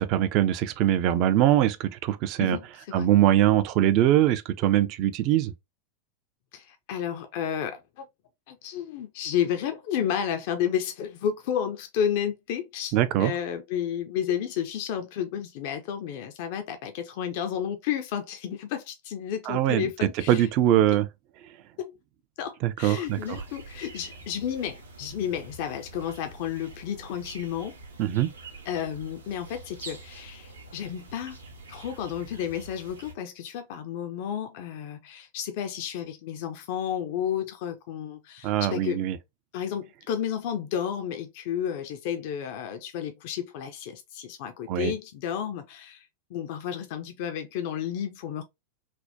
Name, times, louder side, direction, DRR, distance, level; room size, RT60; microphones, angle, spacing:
voice 1, 0.0-2.6 2.9-5.5 12.9-13.3 19.5-21.1 22.6-23.4 28.0-28.3 38.4-39.2 44.7-44.9, right 12 dB, 40° right, 0.4 m, -22 dB
voice 2, 2.4-3.1 6.5-8.1 8.5-20.5 20.7-20.9 21.8-21.9 22.4-27.8 28.7-31.4 31.7-39.0 39.5-48.4, left 9 dB, 50° left, 0.4 m, -32 dB
sound 1, 23.0-33.1, right 2 dB, 75° right, 0.7 m, -45 dB
3.4 x 2.1 x 2.6 m
figure-of-eight pair, 90°, 0 cm